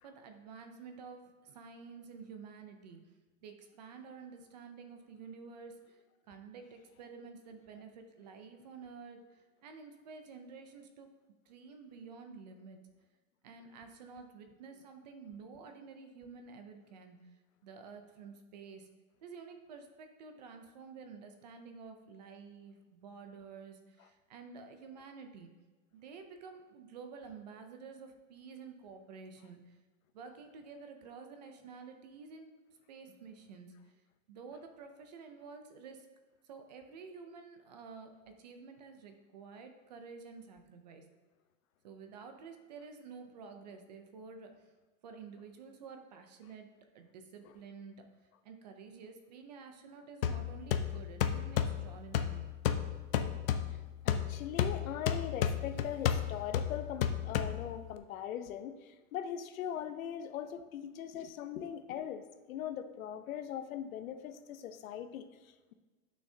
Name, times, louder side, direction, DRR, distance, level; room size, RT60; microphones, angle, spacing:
voice 1, 0.0-3.0 3.4-6.0 6.3-11.1 11.5-12.8 13.4-18.9 19.2-25.5 25.9-29.8 30.1-34.0 34.3-36.1 36.4-41.0 41.8-44.7 45.0-46.7 46.9-48.0 48.4-52.4, right 5 dB, 35° right, 6 dB, 0.5 m, -50 dB
sound 1, 50.2-58.0, left 9 dB, 45° left, 0.4 m, -33 dB
voice 2, 54.0-65.7, left 9 dB, 80° left, 9 dB, 0.8 m, -40 dB
11.5 x 6.2 x 2.7 m, 1.3 s
supercardioid pair, 180°, 41 cm